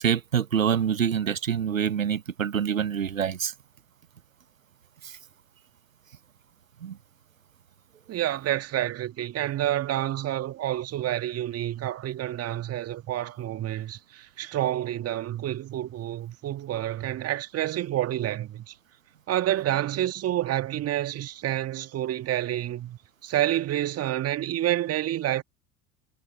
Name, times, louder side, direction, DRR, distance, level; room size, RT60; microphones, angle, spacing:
voice 1, 0.0-3.5 6.8-7.0, right 8 dB, 85° right, 0.9 m, -26 dB
voice 2, 8.1-18.7 19.3-25.4, right 13 dB, 40° right, 2.0 m, -28 dB
figure-of-eight pair, 70°, 39 cm